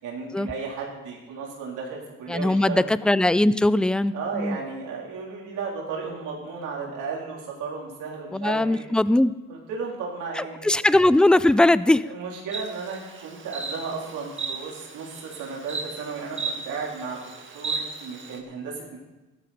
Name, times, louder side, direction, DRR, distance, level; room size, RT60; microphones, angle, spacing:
voice 1, 0.0-2.9 4.1-8.9 9.5-10.7 12.1-17.2 17.5-19.0, right 5 dB, 90° right, -2 dB, 3.7 m, -34 dB
voice 2, 2.3-4.6 8.3-9.3 10.3-12.1, left 1 dB, 5° left, 16 dB, 0.4 m, -20 dB
Insect, 12.5-18.4, right 4 dB, 40° right, 1.9 m, -35 dB
15.0 x 13.0 x 4.3 m, 1.1 s
cardioid pair, 90°, 30 cm